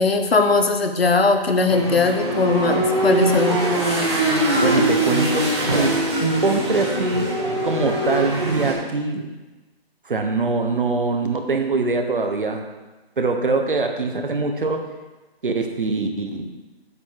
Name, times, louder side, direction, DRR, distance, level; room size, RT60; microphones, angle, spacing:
voice 1, 0.0-3.6, left 3 dB, 70° left, 5 dB, 1.2 m, -19 dB
sound 1, 1.7-8.7, right 1 dB, 25° right, 1.8 m, -22 dB
voice 2, 4.6-7.3 7.6-9.3 10.0-12.6 13.2-14.8 15.4-16.5, right 3 dB, 55° right, 5 dB, 1.3 m, -23 dB
8.1 x 7.8 x 4.8 m, 1.2 s
hypercardioid pair, 180°, 31 cm